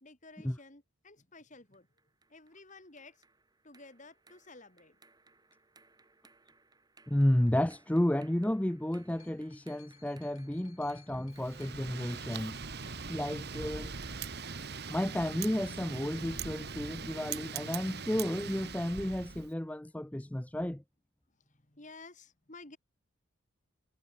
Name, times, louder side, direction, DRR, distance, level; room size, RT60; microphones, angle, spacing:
voice 1, 0.0-1.9 2.3-3.2 3.6-5.0 21.5-22.8, left 3 dB, 35° left, 2.8 m, -53 dB
sound 1, 1.7-19.5, right 3 dB, 20° right, 2.7 m, -65 dB
voice 2, 7.1-12.6 13.1-13.9 14.9-20.8, left 1 dB, 5° left, 0.5 m, -32 dB
sound 2, 8.4-14.2 15.1-15.2, left 10 dB, 85° left, 3.0 m, -63 dB
Wind, 11.3-19.5, right 5 dB, 50° right, 1.4 m, -41 dB
head